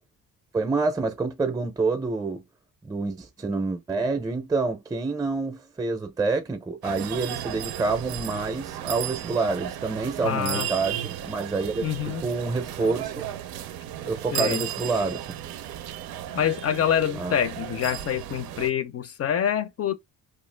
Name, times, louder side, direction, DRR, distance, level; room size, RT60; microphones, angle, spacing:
voice 1, 0.5-2.4 2.8-13.2 14.0-15.3 17.2-17.3, right 3 dB, 10° right, 0.5 m, -27 dB
sound 1, 6.8-18.7, right 11 dB, 85° right, 0.5 m, -35 dB
voice 2, 10.2-10.7 11.8-12.2 14.3-14.7 16.3-19.9, left 9 dB, 45° left, 0.5 m, -26 dB
2.5 x 2.3 x 3.3 m
cardioid pair, 85°, 36 cm